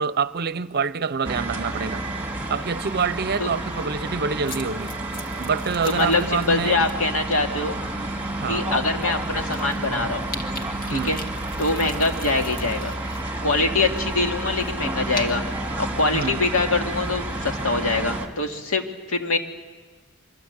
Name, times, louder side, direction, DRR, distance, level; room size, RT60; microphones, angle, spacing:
voice 1, 0.0-2.0 2.5-4.9 5.4-6.9 8.4-8.6 10.9-11.2 16.1-16.4, right 5 dB, 50° right, 0.7 m, -26 dB
sound 1, 1.2-18.3, right 2 dB, 10° right, 2.1 m, -30 dB
sound 2, 4.5-6.9 7.3-7.6 8.3-8.4 8.7-8.8 9.0-13.2 13.5-16.3, left 3 dB, 45° left, 2.0 m, -40 dB
voice 2, 5.9-7.8 8.5-10.3 10.9-11.2 11.6-12.9 13.4-15.4 15.8-19.4, left 3 dB, 90° left, 2.2 m, -24 dB
24.5 x 24.0 x 8.1 m
head